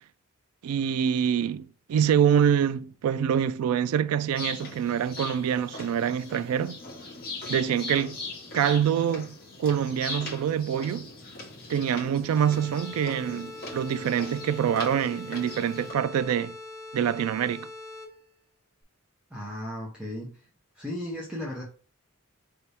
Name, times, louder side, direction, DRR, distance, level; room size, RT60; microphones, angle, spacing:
voice 1, 0.6-6.8 7.5-8.2 8.5-11.1 11.7-16.5 16.9-17.7, right 8 dB, 90° right, 0.3 m, -25 dB
sound 1, 4.3-15.9, left 2 dB, 45° left, 1.5 m, -40 dB
sound 2, 12.4-18.3, left 2 dB, 15° left, 1.1 m, -42 dB
voice 2, 19.3-20.4 20.7-21.6, left 1 dB, 5° right, 1.0 m, -35 dB
5.1 x 3.4 x 2.8 m
head